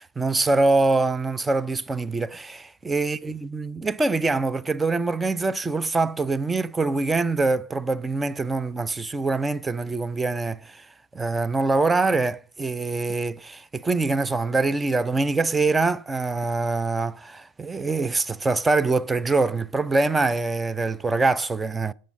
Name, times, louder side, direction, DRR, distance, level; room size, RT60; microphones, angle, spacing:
voice 1, 0.0-10.9 11.1-21.9, right 3 dB, 10° right, 0.5 m, -24 dB
19.0 x 7.5 x 5.3 m
figure-of-eight pair, 90°, 0 cm